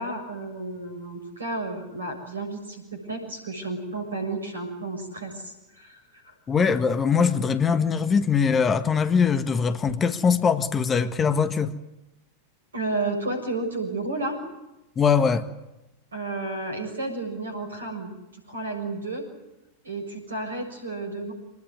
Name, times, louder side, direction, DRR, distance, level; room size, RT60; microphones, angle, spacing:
voice 1, 0.0-6.3 12.7-14.4 16.1-19.2 19.8-21.3, right 2 dB, 70° right, 6.8 m, -32 dB
voice 2, 6.5-11.7 15.0-15.5, left 6 dB, 20° left, 1.6 m, -22 dB
26.0 x 19.5 x 9.8 m
figure-of-eight pair, 90°, 0 cm